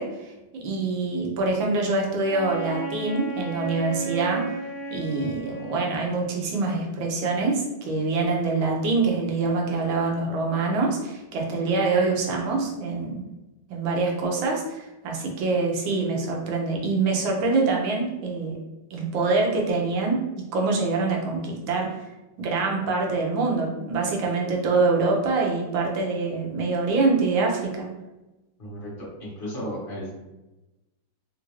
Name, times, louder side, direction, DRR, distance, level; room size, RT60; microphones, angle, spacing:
voice 1, 0.0-4.5 4.9-13.2 13.7-18.6 18.9-20.2 20.5-22.1 22.4-27.9, right 3 dB, 80° right, 0 dB, 1.5 m, -25 dB
Wind instrument woodwind instrument, 2.2-6.6, right 3 dB, 70° left, 0.8 m, -34 dB
voice 2, 28.6-30.1, equal, 35° left, -5 dB, 1.0 m, -34 dB
3.6 x 2.5 x 3.1 m, 1.0 s
omnidirectional pair, 2.2 m